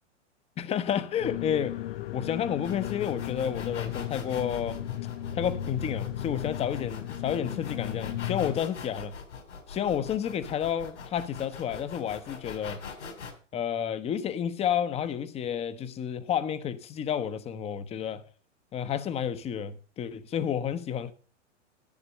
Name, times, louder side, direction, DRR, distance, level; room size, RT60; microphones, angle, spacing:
voice 1, 0.6-1.8 2.1-4.9 5.3-9.2 9.7-12.8 13.5-18.2 18.7-21.1, left 9 dB, 15° left, 0.7 m, -30 dB
sound 1, 1.2-8.6, left 12 dB, 50° left, 0.7 m, -35 dB
sound 2, 2.6-13.3, left 5 dB, 70° left, 3.2 m, -42 dB
10.5 x 7.2 x 6.5 m
figure-of-eight pair, 110°, 37 cm